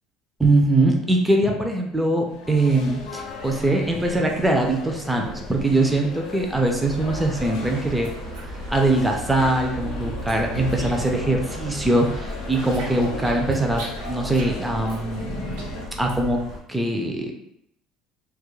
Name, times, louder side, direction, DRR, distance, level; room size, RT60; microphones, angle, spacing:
voice 1, 0.4-8.1 8.7-16.4 16.7-17.3, right 2 dB, 5° right, 1 dB, 0.3 m, -22 dB
sound 1, 2.2-15.8, left 3 dB, 90° left, 0.6 m, -37 dB
sound 2, 6.1-7.1 7.4-9.2 9.4-11.3 11.6-16.4, right 1 dB, 85° right, 0.7 m, -42 dB
sound 3, 6.8-16.6, right 1 dB, 55° right, 0.9 m, -35 dB
2.2 x 2.1 x 3.0 m, 0.74 s
cardioid pair, 145°, 0 cm